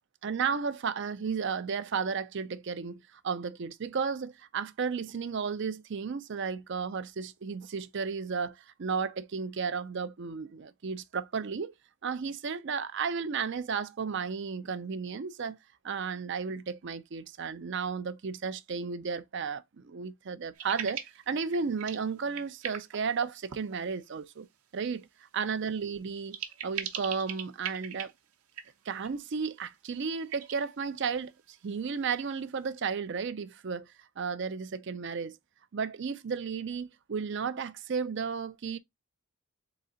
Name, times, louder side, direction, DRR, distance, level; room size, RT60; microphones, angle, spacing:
voice 1, 0.2-11.7 12.0-15.6 15.8-24.5 24.7-25.1 25.3-28.1 28.9-35.4 35.7-38.8, right 5 dB, 55° right, 0.4 m, -33 dB
sound 1, 20.5-21.2 21.5-22.0 22.3-23.8 26.1-28.1 28.5-29.1 30.3-30.6, right 9 dB, 90° right, 0.8 m, -39 dB
3.9 x 3.2 x 3.8 m
head